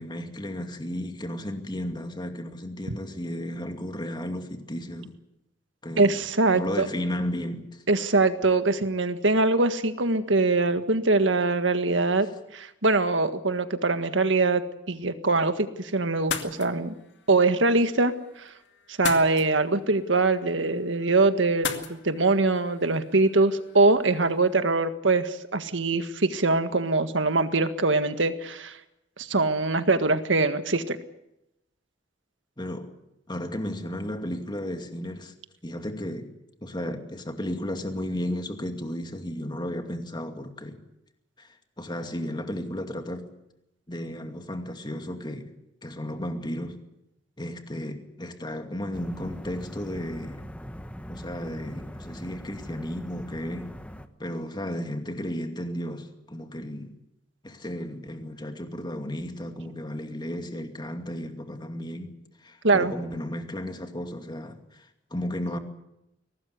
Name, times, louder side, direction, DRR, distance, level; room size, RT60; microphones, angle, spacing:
voice 1, 0.0-5.2 5.8-6.2 6.5-7.8 32.6-33.0 33.3-35.3 35.6-36.3 36.6-40.8 41.4-43.3 43.9-45.5 45.8-46.8 47.4-50.4 51.1-53.7 54.2-56.9 57.4-62.1 62.4-65.6, left 1 dB, 25° left, 2.4 m, -34 dB
voice 2, 6.0-6.9 7.9-12.3 12.5-14.6 14.9-16.9 17.3-18.1 18.4-18.5 19.0-28.8 29.2-31.0 62.6-62.9, right 3 dB, 90° right, 1.7 m, -23 dB
sound 1, 16.1-24.5, left 6 dB, 70° left, 2.2 m, -39 dB
sound 2, 48.9-54.1, equal, 5° left, 1.2 m, -41 dB
23.0 x 19.0 x 8.3 m
head